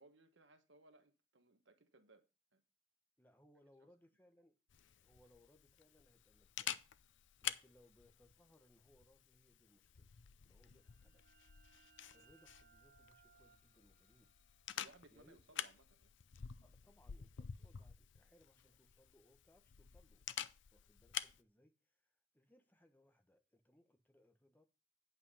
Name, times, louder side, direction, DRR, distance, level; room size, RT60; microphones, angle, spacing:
voice 1, 0.0-2.2 2.5-2.6 3.8-3.9 10.7-10.8 14.7-16.1, right 2 dB, 75° right, 1.2 m, -65 dB
voice 2, 3.2-4.6 5.0-6.9 7.4-10.1 10.4-11.5 12.1-14.3 15.1-15.4 16.6-20.3 20.7-24.7, left 1 dB, 10° left, 1.1 m, -70 dB
Camera, 4.7-21.4, left 10 dB, 80° left, 0.6 m, -50 dB
sound 1, 10.6-16.1, right 6 dB, 45° right, 0.7 m, -71 dB
9.0 x 5.8 x 5.6 m
head